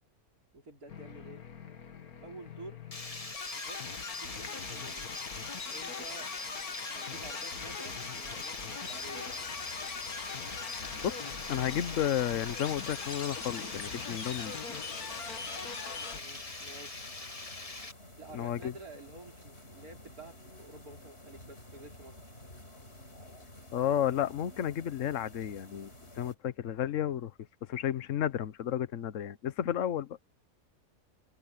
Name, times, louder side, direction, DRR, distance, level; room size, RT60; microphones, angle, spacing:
voice 1, 0.5-1.4 2.2-2.8 3.5-3.8 4.2-5.1 5.7-6.3 6.9-9.3 16.1-17.1 18.2-22.2, right 2 dB, 75° right, 4.8 m, -50 dB
sound 1, 0.9-16.2, left 5 dB, 80° left, 2.1 m, -42 dB
Water, 2.9-17.9, left 3 dB, 25° left, 1.5 m, -43 dB
sound 2, 8.8-26.3, left 1 dB, 45° left, 5.9 m, -52 dB
voice 2, 10.7-11.2 11.5-14.8 18.3-18.7 23.7-25.9 26.2-27.3 27.6-30.2, left 10 dB, 60° left, 1.2 m, -32 dB
omnidirectional pair, 1.6 m